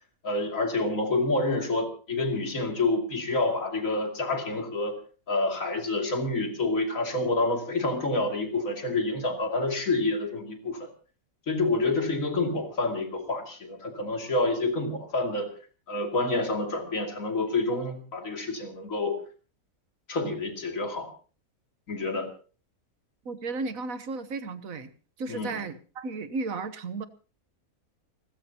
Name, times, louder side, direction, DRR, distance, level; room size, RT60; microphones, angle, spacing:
voice 1, 0.2-5.0 5.3-10.9 11.5-15.5 15.9-19.2 20.1-21.1 21.9-22.3 25.3-25.5, left 2 dB, 60° left, 3 dB, 3.1 m, -28 dB
voice 2, 23.2-24.9 25.2-27.1, right 3 dB, 65° right, 11 dB, 1.5 m, -34 dB
29.5 x 13.5 x 2.9 m, 0.36 s
omnidirectional pair, 1.6 m